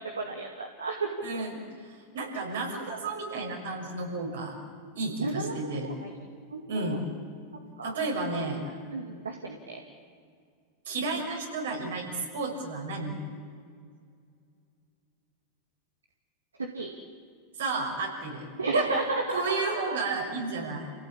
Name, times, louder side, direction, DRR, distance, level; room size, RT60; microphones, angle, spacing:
voice 1, 0.0-1.4 5.2-6.1 6.5-7.0 7.8-7.9 8.6-9.8 16.6-16.9 18.6-20.0, right 3 dB, 90° right, 2 dB, 2.3 m, -32 dB
voice 2, 1.2-1.6 2.1-4.5 4.9-5.9 6.7-7.0 7.8-8.6 10.8-13.2 17.6-18.8 19.3-20.9, right 3 dB, 75° right, 0 dB, 6.6 m, -32 dB
29.0 x 17.0 x 8.8 m, 2.2 s
hypercardioid pair, 95°, 0 cm